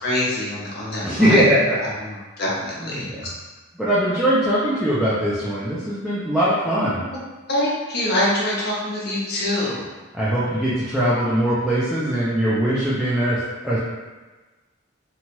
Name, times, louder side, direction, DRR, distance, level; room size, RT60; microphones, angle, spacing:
voice 1, 0.0-1.4 2.1-3.0 7.5-9.8, left 1 dB, 50° left, -5 dB, 0.7 m, -24 dB
voice 2, 1.0-1.8 2.8-3.3 3.8-7.0 10.1-13.8, equal, ahead, -10 dB, 0.4 m, -21 dB
2.9 x 2.3 x 2.9 m, 1.2 s
head